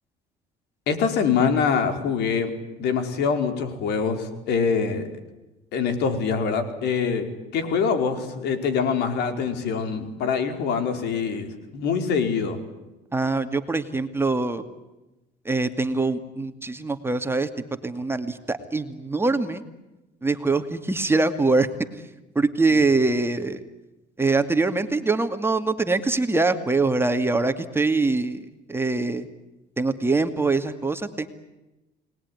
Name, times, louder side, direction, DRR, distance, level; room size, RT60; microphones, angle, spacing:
voice 1, 0.9-2.5 2.8-5.1 5.7-7.3 7.5-12.6 22.7-22.8, left 6 dB, 80° left, 8 dB, 4.7 m, -24 dB
voice 2, 13.1-14.6 15.5-17.5 17.8-19.6 20.2-21.7 22.4-23.6 24.2-28.4 28.7-29.3 29.8-31.3, right 3 dB, 15° right, 8 dB, 2.3 m, -23 dB
29.5 x 20.5 x 9.8 m, 1.0 s
cardioid pair, 110°, 17 cm